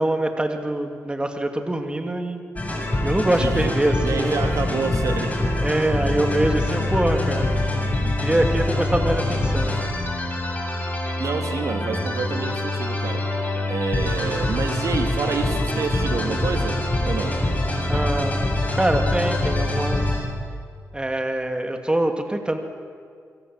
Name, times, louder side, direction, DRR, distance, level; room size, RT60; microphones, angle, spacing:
voice 1, 0.0-2.4 3.0-4.4 5.6-7.5 8.2-9.9 17.9-18.4 18.8-20.2 20.9-22.6, right 1 dB, 15° right, 5 dB, 2.7 m, -24 dB
sound 1, 2.6-20.2, left 1 dB, 25° left, 6.9 m, -24 dB
voice 2, 3.3-3.7 4.0-5.4 11.2-13.2 13.7-17.4, right 4 dB, 70° right, 5 dB, 2.9 m, -28 dB
25.5 x 24.5 x 7.9 m, 2.1 s
cardioid pair, 75°, 6 cm